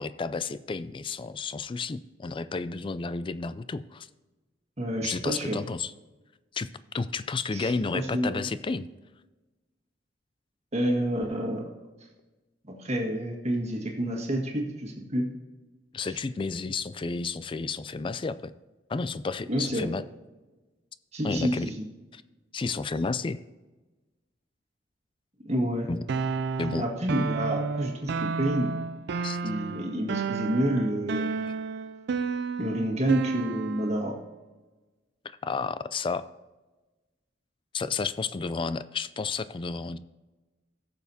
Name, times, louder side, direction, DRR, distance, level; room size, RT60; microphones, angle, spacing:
voice 1, 0.0-4.1 5.0-5.9 6.5-8.9 15.9-18.5 18.9-20.0 21.2-21.7 22.1-22.2 22.5-23.4 25.9-26.0 26.6-26.9 29.2-29.4 31.4-31.5 35.4-36.3 37.7-40.0, left 4 dB, 30° left, 15 dB, 0.4 m, -31 dB
voice 2, 4.8-5.6 7.5-8.4 10.7-11.7 12.7-15.2 16.0-16.2 19.5-19.9 21.1-21.9 25.4-25.9 26.6-28.7 29.4-31.3 32.6-34.1, equal, 35° right, 1 dB, 1.7 m, -29 dB
sound 1, 26.1-34.0, right 4 dB, 65° right, 0.4 m, -31 dB
16.5 x 7.1 x 2.8 m, 1.2 s
head